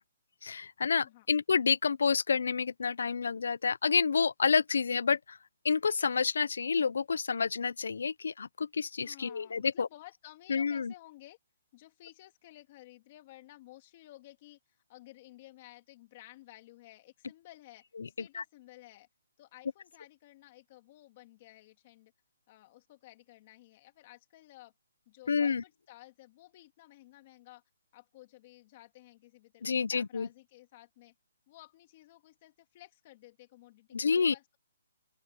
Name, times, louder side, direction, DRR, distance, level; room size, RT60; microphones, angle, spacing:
voice 1, 0.4-5.4 5.6-9.9 10.5-10.9 18.3-18.4 25.3-25.6 29.6-30.3 33.9-34.3, left 5 dB, 70° left, 0.5 m, -29 dB
voice 2, 9.0-11.4 11.7-17.8 18.2-19.1 19.4-22.1 22.5-24.7 25.1-27.6 27.9-31.1 31.5-34.6, left 16 dB, 25° left, 3.0 m, -55 dB
open air
hypercardioid pair, 175°, 0 cm